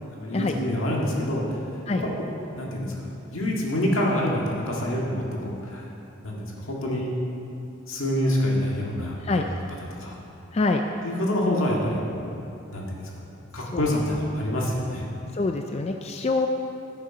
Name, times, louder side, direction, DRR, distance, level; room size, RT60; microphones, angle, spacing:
voice 1, 0.2-1.6 2.0-2.3 2.5-5.9 6.2-7.1 7.9-9.5 10.0-10.2 11.0-12.4 12.7-13.1 13.5-15.0, left 1 dB, 85° left, -3 dB, 1.8 m, -27 dB
voice 2, 15.3-16.5, left 3 dB, 30° left, 4 dB, 0.4 m, -25 dB
13.0 x 6.6 x 5.0 m, 2.8 s
head